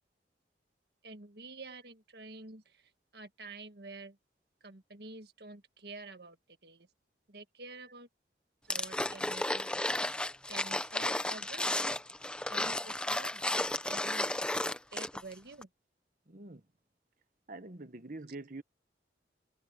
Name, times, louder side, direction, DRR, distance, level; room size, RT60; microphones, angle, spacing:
voice 1, 1.0-4.2 4.6-6.4 6.6-6.9 7.3-8.1 8.7-9.7 10.5-11.8 12.5-13.4 13.8-14.3 14.9-15.7, right 3 dB, 65° right, 1.8 m, -48 dB
sound 1, 8.7-15.3 15.6-15.7, left 1 dB, 5° left, 0.6 m, -33 dB
voice 2, 16.3-16.7 17.5-18.6, right 2 dB, 50° right, 1.2 m, -45 dB
head